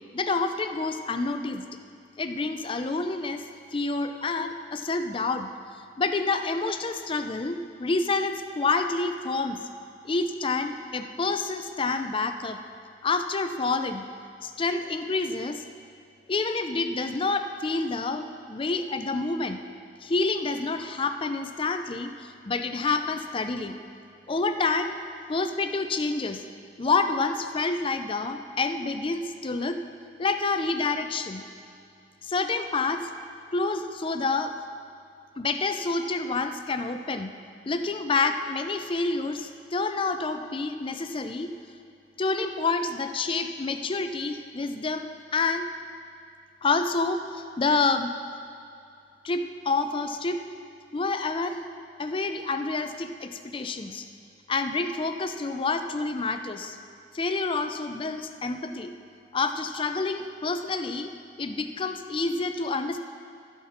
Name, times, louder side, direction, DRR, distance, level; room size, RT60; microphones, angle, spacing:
voice 1, 0.1-1.7 2.2-3.4 3.7-5.5 6.0-9.6 10.0-12.6 13.0-14.0 14.4-15.6 16.3-19.6 20.0-23.7 24.3-24.9 25.3-26.4 26.8-29.8 30.2-31.4 32.2-33.1 33.5-34.5 35.4-37.3 37.7-41.5 42.2-45.7 46.6-48.1 49.2-50.4 50.9-51.6 52.0-54.1 54.5-56.8 57.1-58.9 59.3-61.1 61.4-63.0, left 3 dB, 30° left, 8 dB, 0.4 m, -28 dB
15.0 x 5.9 x 4.3 m, 2.5 s
head